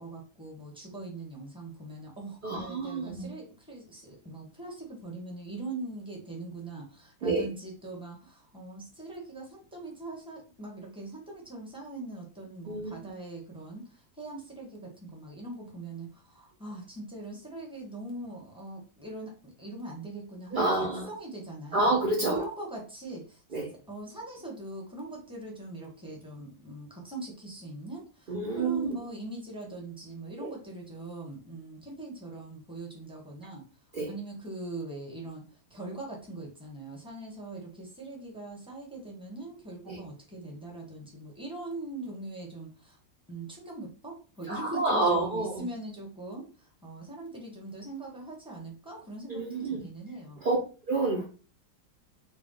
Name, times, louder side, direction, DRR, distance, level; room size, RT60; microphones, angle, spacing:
voice 1, 0.0-21.9 22.3-23.6 23.9-33.6 34.1-35.4 35.7-43.0 43.3-50.4, right 2 dB, 5° right, -1 dB, 1.0 m, -41 dB
voice 2, 2.4-3.3 7.2-7.5 12.7-13.0 20.5-21.1 21.7-22.4 23.5-23.7 28.3-28.9 30.4-30.5 33.9-34.1 39.9-40.0 44.5-45.6 49.3-49.8 50.4-50.6 50.9-51.2, right 2 dB, 65° right, -2 dB, 0.5 m, -28 dB
4.1 x 2.2 x 3.7 m, 0.35 s
omnidirectional pair, 1.8 m